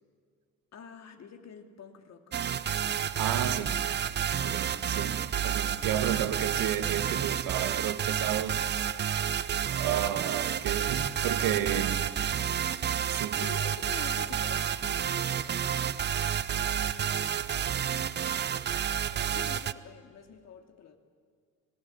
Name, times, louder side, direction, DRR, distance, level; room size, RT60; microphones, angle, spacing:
voice 1, 0.7-2.3 3.6-3.9 11.7-11.9 13.3-17.5 18.0-21.0, left 7 dB, 40° left, 2.6 m, -48 dB
sound 1, 2.3-19.7, right 9 dB, 25° right, 0.7 m, -30 dB
voice 2, 3.2-3.9 4.4-8.6 9.7-12.0 13.1-13.5, right 11 dB, 50° right, 1.7 m, -32 dB
23.5 x 17.5 x 9.5 m
figure-of-eight pair, 65°, 42 cm